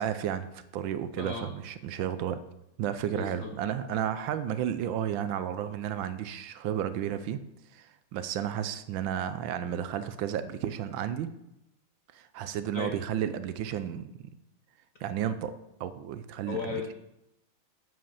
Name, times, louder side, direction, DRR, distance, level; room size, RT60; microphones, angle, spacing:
voice 1, 0.0-2.4 2.8-7.4 7.7-11.3 12.1-14.3 15.0-15.5 15.8-16.8, right 9 dB, 75° right, 12 dB, 1.3 m, -32 dB
voice 2, 1.2-1.5 3.1-3.5 12.7-13.0 16.5-16.9, left 5 dB, 65° left, 3 dB, 0.8 m, -35 dB
8.1 x 5.0 x 7.1 m, 0.85 s
omnidirectional pair, 2.2 m